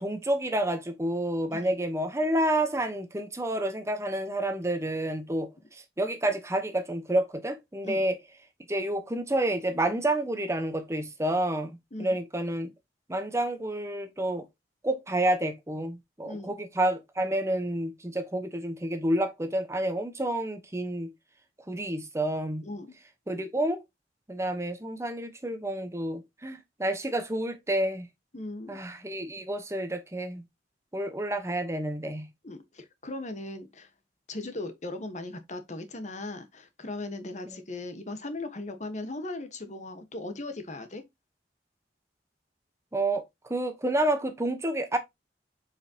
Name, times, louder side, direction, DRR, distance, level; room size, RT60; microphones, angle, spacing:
voice 1, 0.0-8.2 8.7-12.7 13.1-14.4 14.8-21.1 21.7-22.6 23.3-23.8 24.3-28.1 28.7-30.4 30.9-32.3 37.5-37.6 42.9-45.0, right 1 dB, 15° right, 0.9 m, -29 dB
voice 2, 22.6-23.0 28.3-28.8 32.4-33.9 34.3-41.0, left 2 dB, 40° left, 1.2 m, -38 dB
7.1 x 5.2 x 2.8 m
head